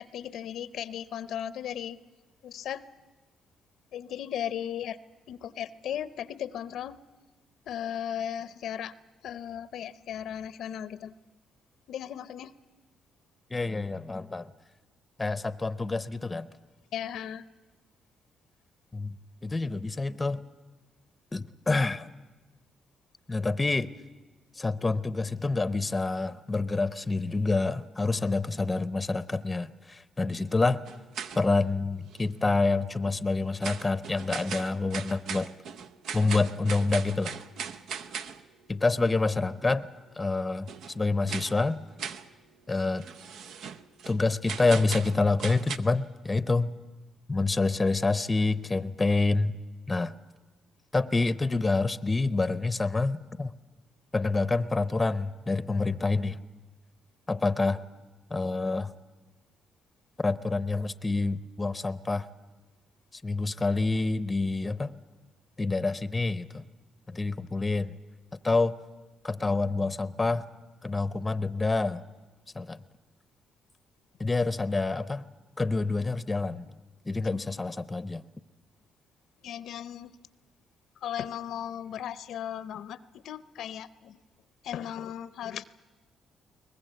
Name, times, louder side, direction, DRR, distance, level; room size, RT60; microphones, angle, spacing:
voice 1, 0.0-2.0 2.4-2.8 3.9-5.0 5.3-7.0 7.7-8.9 9.2-11.1 11.9-12.5 16.9-17.4 79.4-80.1 81.0-84.2 84.6-85.6, left 10 dB, 75° left, 17 dB, 0.6 m, -36 dB
voice 2, 13.5-14.5 15.2-16.5 18.9-19.1 19.4-20.4 21.3-22.1 23.3-23.9 24.6-30.8 31.3-35.5 36.1-37.3 38.7-39.9 40.2-40.7 40.9-41.8 42.7-43.1 44.1-46.7 47.3-49.6 49.9-50.1 50.9-53.5 54.1-56.4 57.3-57.8 58.3-58.9 60.2-62.3 63.1-64.9 65.6-66.6 67.1-67.9 68.4-68.7 69.2-70.4 70.8-72.0 72.5-72.8 74.2-75.2 75.6-76.7 77.1-78.2, left 3 dB, 20° left, 16 dB, 0.7 m, -27 dB
sound 1, 30.8-31.6 32.1-32.2 33.6-38.5 40.7-41.0 41.3-41.6 42.0-42.3 43.0-44.2 44.5-45.8, right 7 dB, 75° right, 0.7 m, -38 dB
22.0 x 19.5 x 8.1 m, 1.2 s
cardioid pair, 90°, 0 cm